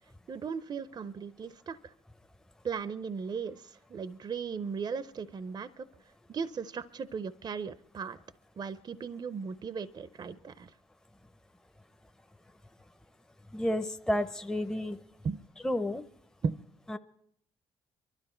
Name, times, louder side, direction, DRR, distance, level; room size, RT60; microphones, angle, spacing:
voice 1, 0.3-1.9 2.6-5.9 6.3-8.2 8.6-10.7 15.2-15.4 16.4-16.6, right 6 dB, 40° right, 14 dB, 0.5 m, -37 dB
voice 2, 13.5-15.0 15.6-16.1 16.9-17.0, left 1 dB, 5° left, 9 dB, 0.6 m, -31 dB
23.5 x 12.5 x 4.4 m, 0.69 s
supercardioid pair, 70°, 12 cm